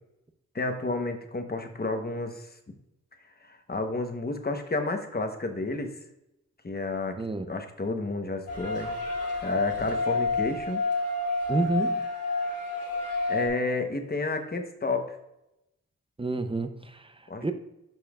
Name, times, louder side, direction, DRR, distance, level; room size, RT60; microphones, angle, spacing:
voice 1, 0.5-2.5 3.4-5.9 6.6-7.2 7.5-9.0 9.4-10.8 13.3-15.2 17.3-17.5, left 2 dB, 30° left, 6 dB, 1.0 m, -31 dB
sound 1, 8.5-13.5, left 3 dB, 55° left, 1.8 m, -29 dB
voice 2, 11.5-12.0 16.2-17.1 17.4-17.5, right 2 dB, 20° right, 9 dB, 0.6 m, -29 dB
11.5 x 5.5 x 2.4 m, 0.88 s
wide cardioid pair, 100°, 30 cm